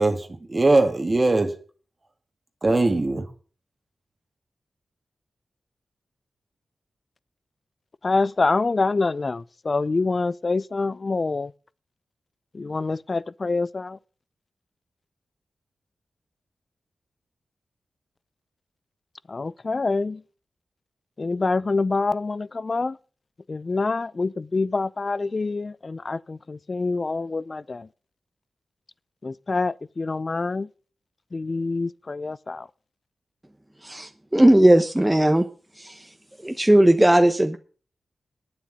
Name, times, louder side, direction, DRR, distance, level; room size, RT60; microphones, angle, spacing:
voice 1, 0.0-1.5 2.6-3.3, right 2 dB, 35° right, 1.8 m, -21 dB
voice 2, 8.0-11.5 12.5-14.0 19.3-20.2 21.2-23.0 23.5-27.9 29.2-30.7 31.3-32.7, left 3 dB, 45° left, 0.5 m, -26 dB
voice 3, 33.8-35.5 35.8-36.1 36.4-37.6, right 1 dB, 10° right, 1.0 m, -18 dB
9.3 x 7.6 x 8.8 m
cardioid pair, 65°, 0 cm